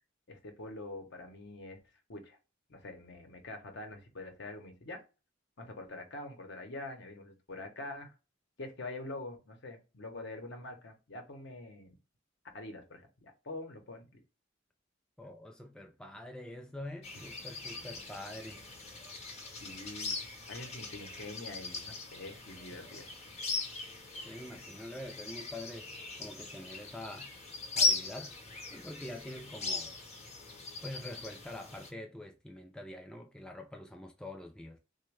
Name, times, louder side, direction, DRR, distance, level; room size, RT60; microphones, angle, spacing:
voice 1, 0.3-1.8 2.1-2.4 2.7-5.0 5.6-8.1 8.6-11.9 12.5-14.2 19.6-20.2 20.5-23.1, left 2 dB, 65° left, 0.8 m, -45 dB
voice 2, 15.2-18.6 24.2-25.9 26.2-27.3 27.8-28.3 28.7-29.9 30.8-34.8, left 1 dB, 5° left, 0.3 m, -45 dB
sound 1, 17.0-31.9, left 3 dB, 35° left, 0.8 m, -39 dB
3.4 x 2.1 x 3.1 m
head